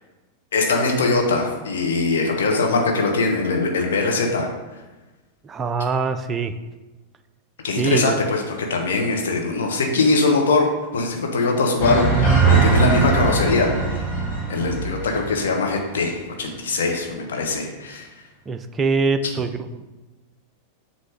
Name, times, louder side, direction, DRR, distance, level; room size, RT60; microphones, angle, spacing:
voice 1, 0.5-4.5 7.6-10.7 10.9-14.1 14.5-18.1, left 3 dB, 65° left, 1 dB, 1.1 m, -21 dB
voice 2, 5.4-6.5 7.8-8.2 18.5-19.8, right 4 dB, 20° right, 8 dB, 0.4 m, -23 dB
sound 1, 11.8-15.7 16.0-16.1, right 4 dB, 40° left, 1.7 m, -20 dB
7.5 x 2.9 x 5.0 m, 1.2 s
figure-of-eight pair, 90°, 0 cm